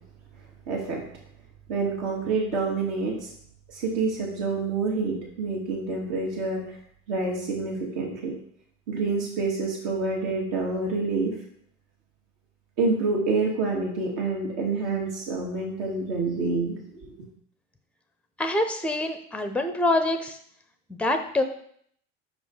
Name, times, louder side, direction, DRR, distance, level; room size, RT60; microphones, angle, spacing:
voice 1, 0.7-1.0 1.7-3.1 3.7-6.6 7.1-8.3 8.9-11.3 12.8-17.1, right 3 dB, 55° right, -2 dB, 2.5 m, -27 dB
voice 2, 18.4-20.4 20.9-21.4, left 2 dB, 5° left, 8 dB, 0.7 m, -25 dB
5.5 x 5.0 x 4.0 m, 0.64 s
figure-of-eight pair, 75°, 37 cm